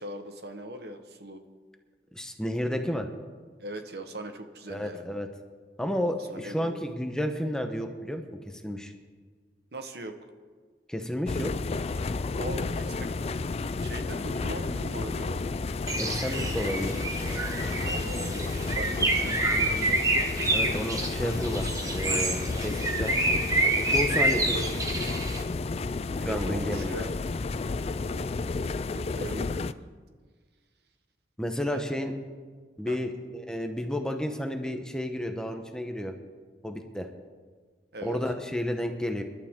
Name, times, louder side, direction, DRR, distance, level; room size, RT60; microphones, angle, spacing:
voice 1, 0.0-1.4 3.6-5.0 6.3-6.9 9.7-10.2 12.3-13.1 13.5-15.4 17.8-20.0 24.2-24.7 26.0-27.2 28.0-29.7 31.7-31.9 32.9-33.0 37.9-38.2, right 1 dB, 65° right, 7 dB, 1.2 m, -40 dB
voice 2, 2.1-3.1 4.7-5.3 5.8-8.9 10.9-11.5 16.0-17.0 20.5-23.2 23.9-24.5 26.2-27.0 31.4-32.1 32.8-36.1 36.6-37.1 38.0-39.2, equal, 5° left, 5 dB, 1.0 m, -31 dB
sound 1, 11.3-29.7, left 3 dB, 35° left, 0.4 m, -31 dB
Bird, 15.9-25.4, right 2 dB, 20° right, 1.3 m, -28 dB
27.0 x 12.0 x 3.7 m, 1.5 s
head